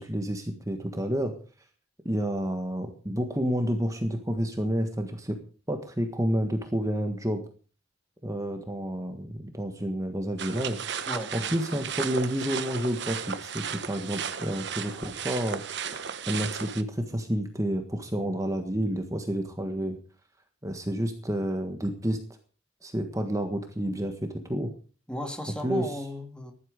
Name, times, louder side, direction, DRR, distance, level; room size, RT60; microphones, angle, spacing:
voice 1, 0.0-1.3 2.0-5.4 5.7-7.4 8.2-10.8 11.3-15.6 15.9-20.0 20.6-22.2 22.8-24.7 25.6-25.9, equal, 15° right, 5 dB, 1.5 m, -30 dB
sound 1, 10.4-16.8, right 7 dB, 55° right, 1.1 m, -35 dB
voice 2, 11.1-11.8 25.1-26.5, equal, 5° left, 5 dB, 1.7 m, -36 dB
15.0 x 11.5 x 5.2 m, 0.38 s
head